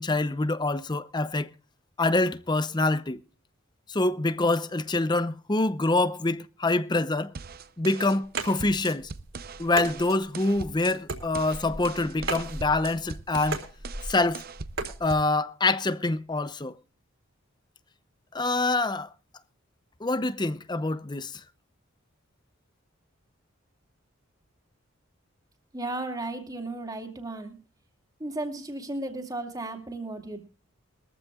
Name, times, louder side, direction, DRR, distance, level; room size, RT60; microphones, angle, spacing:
voice 1, 0.0-1.5 2.0-3.2 3.9-7.3 7.8-9.1 9.6-13.6 14.0-14.4 15.0-16.7 18.3-19.1 20.0-21.4, left 2 dB, 20° left, 0.7 m, -26 dB
sound 1, 7.3-15.3, right 4 dB, 45° right, 0.7 m, -41 dB
sound 2, 8.2-15.0, right 3 dB, 65° right, 3.7 m, -37 dB
voice 2, 25.7-27.5 28.2-30.4, right 2 dB, 20° right, 2.7 m, -34 dB
22.0 x 14.5 x 2.3 m
head